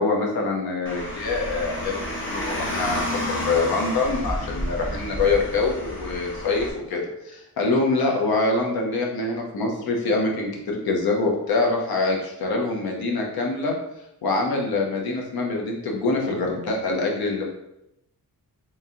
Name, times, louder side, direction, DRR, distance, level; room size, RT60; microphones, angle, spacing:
voice 1, 0.0-13.7 14.2-17.4, left 3 dB, 85° left, 0 dB, 0.9 m, -25 dB
Car, 0.9-6.7, left 1 dB, 35° left, 1.0 m, -30 dB
3.1 x 2.8 x 3.7 m, 0.84 s
cardioid pair, 80°, 36 cm